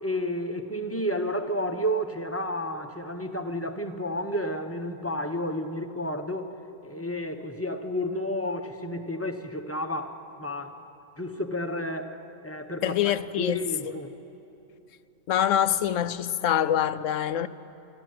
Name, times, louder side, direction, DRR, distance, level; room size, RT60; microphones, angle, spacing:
voice 1, 0.0-6.5 6.8-10.7 11.2-13.0 13.4-14.1, equal, 10° left, 0.9 m, -31 dB
voice 2, 12.8-13.6 15.3-17.5, left 10 dB, 80° left, 1.0 m, -25 dB
25.5 x 13.5 x 9.6 m
omnidirectional pair, 1.3 m